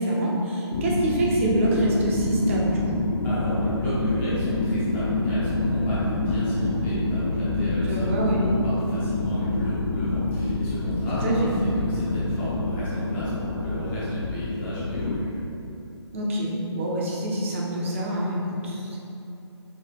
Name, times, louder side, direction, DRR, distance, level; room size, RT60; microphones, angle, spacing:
voice 1, 0.0-3.0 7.8-8.4 11.2-11.5 16.1-19.0, right 1 dB, 30° right, -3 dB, 0.6 m, -26 dB
sound 1, 0.7-15.2, left 2 dB, 60° left, 0.5 m, -26 dB
voice 2, 3.2-15.3, equal, 10° left, -10 dB, 0.6 m, -34 dB
4.9 x 2.7 x 3.0 m, 2.8 s
figure-of-eight pair, 155°, 15 cm